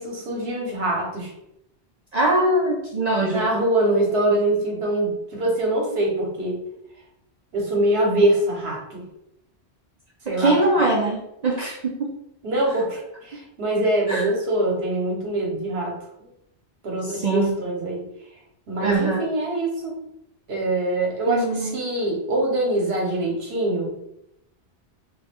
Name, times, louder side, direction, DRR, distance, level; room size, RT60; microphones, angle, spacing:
voice 1, 0.0-1.3 3.3-6.6 7.5-9.0 10.3-10.6 12.4-16.3 16.8-18.0 18.7-19.9 20.5-23.9, right 1 dB, 70° right, -1 dB, 1.2 m, -24 dB
voice 2, 2.1-3.5 10.3-12.1 14.1-14.2 17.1-17.6 18.8-19.2 21.3-21.8, right 2 dB, 50° right, -2 dB, 0.5 m, -22 dB
3.4 x 2.2 x 3.5 m, 0.81 s
omnidirectional pair, 1.1 m